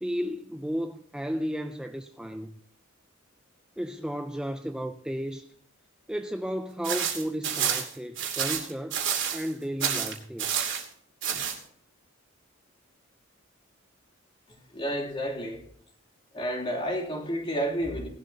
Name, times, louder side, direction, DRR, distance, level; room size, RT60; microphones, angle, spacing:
voice 1, 0.0-2.6 3.8-5.5 6.1-9.0 9.3-10.6, equal, 5° right, 0.5 m, -33 dB
sound 1, 6.8-9.5 9.8-10.8 11.2-11.6, right 8 dB, 60° right, 2.6 m, -29 dB
voice 2, 14.7-15.6 16.3-18.1, equal, 25° left, 3.0 m, -30 dB
18.5 x 11.5 x 2.9 m
head